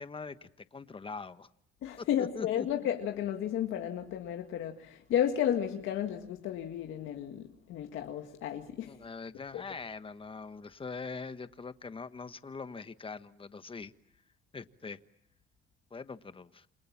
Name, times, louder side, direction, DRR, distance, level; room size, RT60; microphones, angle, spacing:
voice 1, 0.0-1.5 2.0-2.7 8.8-13.9 14.5-15.0 15.9-16.7, left 4 dB, 25° left, 1.3 m, -42 dB
voice 2, 1.8-9.0, left 10 dB, 85° left, 1.9 m, -33 dB
28.5 x 26.5 x 7.3 m
cardioid pair, 90°, 20 cm